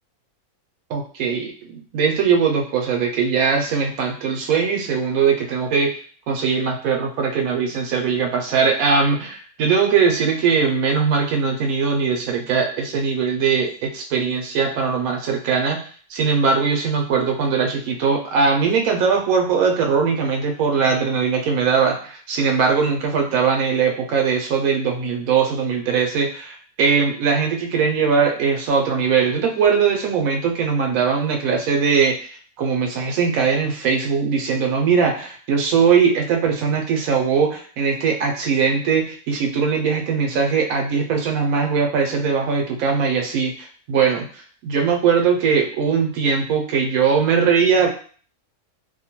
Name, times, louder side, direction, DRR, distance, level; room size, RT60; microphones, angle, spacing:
voice 1, 0.9-6.0 6.3-15.8 16.1-47.9, right 6 dB, 75° right, 3 dB, 1.0 m, -20 dB
2.7 x 2.2 x 2.9 m, 0.44 s
omnidirectional pair, 1.6 m